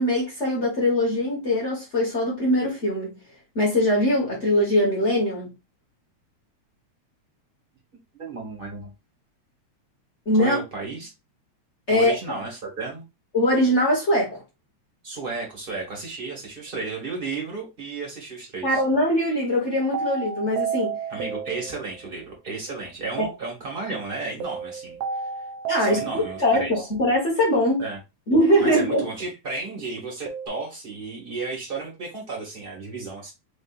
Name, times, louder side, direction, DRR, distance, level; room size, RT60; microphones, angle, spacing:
voice 1, 0.0-3.2 3.5-5.5 10.2-10.6 11.9-12.1 13.3-14.4 18.6-21.0 23.2-23.3 25.7-27.8 28.3-29.0, left 1 dB, 35° left, 1.2 m, -22 dB
voice 2, 8.1-8.9 10.4-11.1 11.9-13.0 15.0-18.8 21.1-25.0 25.8-26.9 27.8-28.0 28.6-33.3, right 3 dB, 20° right, 1.6 m, -33 dB
sound 1, 19.9-22.2 24.4-26.7 30.3-30.5, right 6 dB, 70° right, 1.6 m, -31 dB
5.3 x 3.2 x 2.5 m
omnidirectional pair, 3.4 m